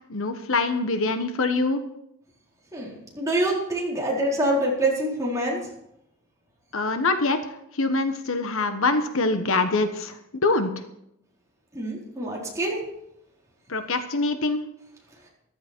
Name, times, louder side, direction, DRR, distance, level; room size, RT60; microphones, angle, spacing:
voice 1, 0.1-1.8 6.7-7.4 7.7-10.1 10.4-10.7 13.7-14.6, left 3 dB, 65° left, 8 dB, 1.2 m, -24 dB
voice 2, 2.7-5.6 11.7-12.8, right 1 dB, 15° right, -4 dB, 4.2 m, -26 dB
14.5 x 13.0 x 4.5 m, 0.78 s
head